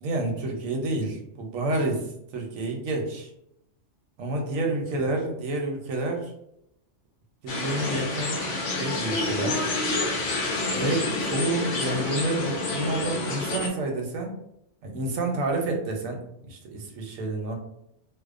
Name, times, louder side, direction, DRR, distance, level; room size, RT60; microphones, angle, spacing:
voice 1, 0.0-3.3 4.2-6.3 7.4-9.6 10.7-14.3 14.8-17.6, right 2 dB, 85° right, 2 dB, 1.0 m, -29 dB
sound 1, 7.5-13.7, left 2 dB, 60° left, 0.5 m, -28 dB
2.6 x 2.0 x 2.4 m, 0.78 s
omnidirectional pair, 1.4 m